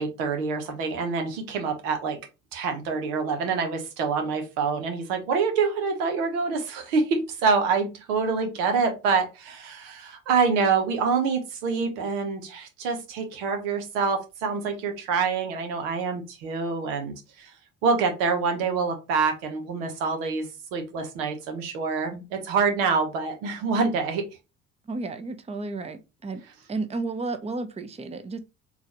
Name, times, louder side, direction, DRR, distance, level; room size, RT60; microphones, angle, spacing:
voice 1, 0.0-2.2 2.5-17.5 17.8-24.3, right 5 dB, 85° right, 1.0 m, -26 dB
voice 2, 24.9-26.4 26.7-28.4, right 3 dB, 15° right, 0.6 m, -32 dB
3.9 x 2.4 x 2.9 m
hypercardioid pair, 60°, 38 cm